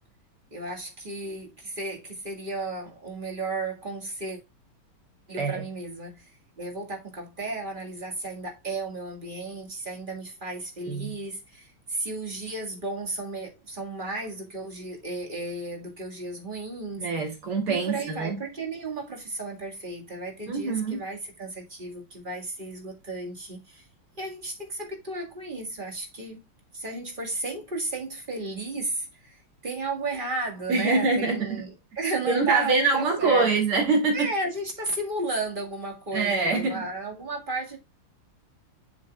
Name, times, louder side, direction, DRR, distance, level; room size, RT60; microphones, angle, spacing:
voice 1, 0.5-4.4 5.3-17.1 17.7-23.9 24.2-26.4 26.7-33.5 34.1-37.8, right 3 dB, 25° right, 1.8 m, -34 dB
voice 2, 17.0-18.4 20.5-21.0 30.7-31.6 32.3-34.3 36.1-36.9, right 3 dB, 85° right, 3.5 m, -24 dB
7.4 x 7.1 x 2.3 m
omnidirectional pair, 2.3 m